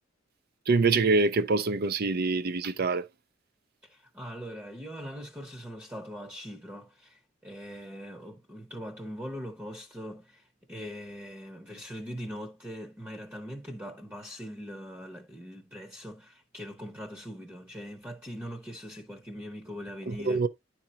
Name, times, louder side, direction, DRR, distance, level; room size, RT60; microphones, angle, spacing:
voice 1, 0.7-3.0 20.1-20.5, right 3 dB, 50° right, 0.5 m, -25 dB
voice 2, 3.8-20.5, equal, 10° right, 0.9 m, -41 dB
10.5 x 4.3 x 2.8 m
head